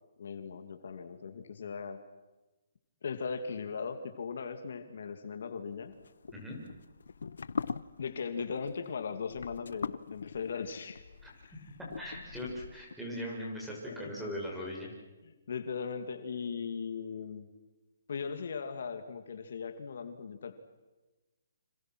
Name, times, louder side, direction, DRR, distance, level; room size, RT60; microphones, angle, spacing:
voice 1, 0.2-2.0 3.0-5.9 8.0-11.0 11.4-11.5 13.8-14.1 15.2-17.5 18.1-20.5, left 5 dB, 65° left, 8 dB, 2.4 m, -38 dB
sound 1, 5.9-13.0, left 5 dB, 80° left, 0.9 m, -42 dB
voice 2, 12.0-14.9, left 1 dB, 5° right, -2 dB, 6.3 m, -39 dB
30.0 x 27.0 x 6.2 m, 1.1 s
hypercardioid pair, 165°, 0 cm